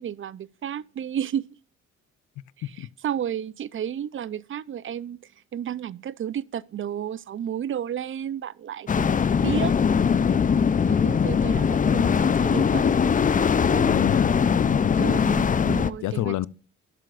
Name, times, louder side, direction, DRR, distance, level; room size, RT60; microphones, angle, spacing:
voice 1, 0.0-1.5 2.6-5.2 5.5-9.1 9.4-9.7 10.8-13.0 13.3-13.9 15.0-16.3, right 9 dB, 45° right, 0.5 m, -32 dB
sound 1, 8.9-15.9, left 6 dB, 25° left, 0.5 m, -21 dB
voice 2, 13.7-14.9 16.0-16.5, left 15 dB, 75° left, 0.6 m, -29 dB
12.5 x 11.5 x 2.5 m
cardioid pair, 90°, 30 cm